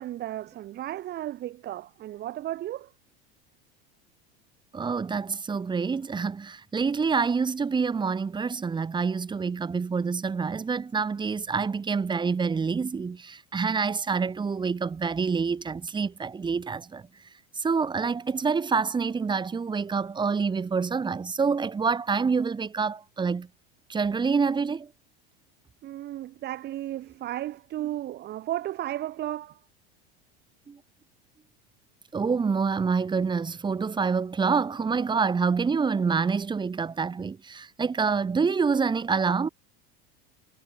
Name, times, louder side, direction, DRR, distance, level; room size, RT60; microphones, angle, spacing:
voice 1, 0.0-2.9 25.8-29.6, right 13 dB, 35° right, 0.8 m, -34 dB
voice 2, 4.7-17.0 17.6-23.5 23.9-24.9 30.7-30.8 32.1-39.5, right 5 dB, 15° right, 1.1 m, -27 dB
supercardioid pair, 120°, 29 cm